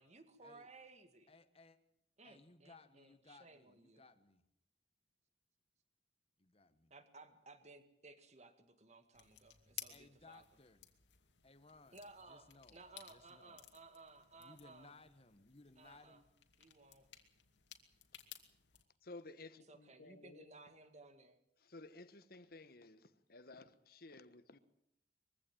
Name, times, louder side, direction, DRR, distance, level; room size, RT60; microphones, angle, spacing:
voice 1, 0.0-1.3 2.2-4.0 6.9-10.4 11.9-14.9 15.8-16.2 16.6-17.1 19.7-21.4, right 3 dB, 40° right, 2.1 m, -59 dB
voice 2, 1.3-1.8 2.2-4.4 6.4-6.9 9.9-10.9 11.4-13.6 14.4-16.2, left 3 dB, 35° left, 1.6 m, -62 dB
sound 1, 9.1-18.8, left 12 dB, 85° left, 2.5 m, -57 dB
voice 3, 19.0-20.5 21.6-24.6, left 2 dB, 55° left, 1.3 m, -55 dB
23.0 x 15.5 x 9.1 m
head